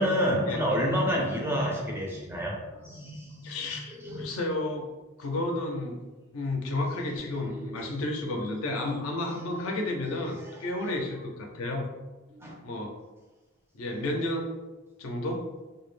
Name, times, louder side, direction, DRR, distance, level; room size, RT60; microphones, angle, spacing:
voice 1, 0.0-4.2 6.9-7.0 7.3-7.9 8.8-8.9 9.7-11.0 12.3-12.6, equal, 10° right, -2 dB, 0.4 m, -31 dB
voice 2, 3.4-4.9 5.2-6.0 6.3-11.9 12.6-13.0 13.7-14.6 15.0-15.4, left 2 dB, 70° left, 1 dB, 0.5 m, -32 dB
2.2 x 2.0 x 3.1 m, 1.2 s
head